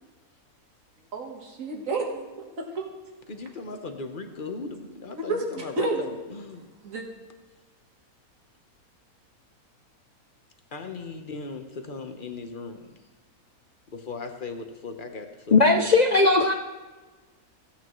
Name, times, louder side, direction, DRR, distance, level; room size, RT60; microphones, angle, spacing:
voice 1, 1.1-2.3 2.8-2.9 5.2-6.1 6.8-7.0, right 2 dB, 60° right, 2 dB, 1.9 m, -30 dB
voice 2, 3.3-6.6 10.7-12.9 13.9-15.9, left 3 dB, 40° left, 5 dB, 0.9 m, -38 dB
voice 3, 15.5-16.5, left 3 dB, 80° left, 5 dB, 0.3 m, -18 dB
16.0 x 8.6 x 3.1 m, 1.3 s
omnidirectional pair, 1.5 m